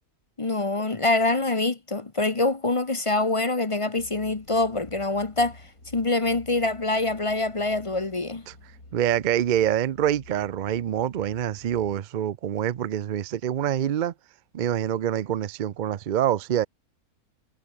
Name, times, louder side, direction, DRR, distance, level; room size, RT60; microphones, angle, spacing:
voice 1, 0.4-5.6 5.9-8.4, left 2 dB, 25° left, 0.9 m, -25 dB
sound 1, 4.0-12.0, left 2 dB, 70° left, 7.5 m, -50 dB
voice 2, 8.9-14.1 14.5-16.7, right 10 dB, 75° right, 0.4 m, -25 dB
omnidirectional pair, 1.6 m